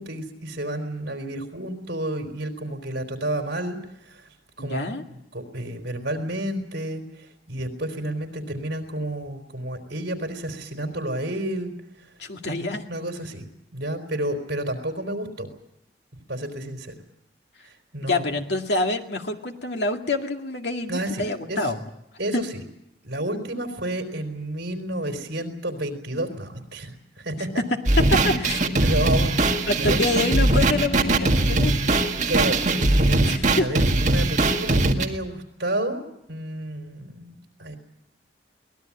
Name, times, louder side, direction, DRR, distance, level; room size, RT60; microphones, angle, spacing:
voice 1, 0.0-4.3 4.6-4.9 5.3-11.7 12.0-12.1 12.9-13.5 13.7-15.5 16.3-17.0 17.6-18.2 20.9-21.7 22.2-22.6 23.0-27.6 28.2-28.3 28.8-30.0 32.3-33.2 33.6-37.8, right 1 dB, 70° right, 5 dB, 3.9 m, -30 dB
voice 2, 4.6-5.0 12.2-12.8 18.0-21.8 22.3-22.4 27.6-28.6 29.7-32.0 33.2-33.7, left 2 dB, 70° left, 4 dB, 2.2 m, -26 dB
sound 1, 27.9-35.1, right 2 dB, 40° right, 1.9 m, -20 dB
23.5 x 19.0 x 8.5 m, 0.82 s
head